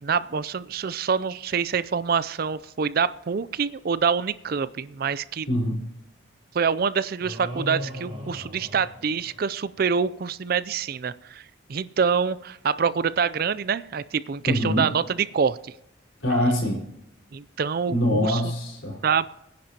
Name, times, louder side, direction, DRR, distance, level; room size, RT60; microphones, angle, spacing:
voice 1, 0.0-5.5 6.5-11.4 11.7-15.7 16.3-16.5 17.3-18.4 19.0-19.3, right 6 dB, 50° right, 17 dB, 0.4 m, -26 dB
voice 2, 5.5-5.9 14.4-14.9 16.2-16.9 17.9-19.0, left 1 dB, 80° left, -2 dB, 4.5 m, -24 dB
sound 1, 7.2-9.7, left 1 dB, 30° right, 5.4 m, -37 dB
23.5 x 10.5 x 2.9 m, 0.86 s
head